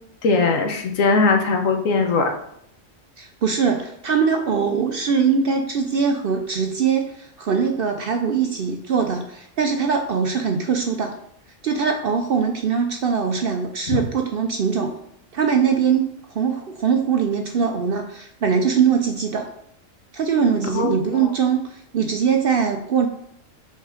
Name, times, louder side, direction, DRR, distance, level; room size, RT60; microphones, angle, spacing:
voice 1, 0.2-2.3 13.9-14.0 20.7-21.3, left 4 dB, 75° left, 4 dB, 1.3 m, -20 dB
voice 2, 3.2-11.1 11.6-14.9 15.3-19.5 20.1-23.1, right 6 dB, 60° right, 5 dB, 0.6 m, -22 dB
5.5 x 3.7 x 4.9 m, 0.71 s
omnidirectional pair, 1.4 m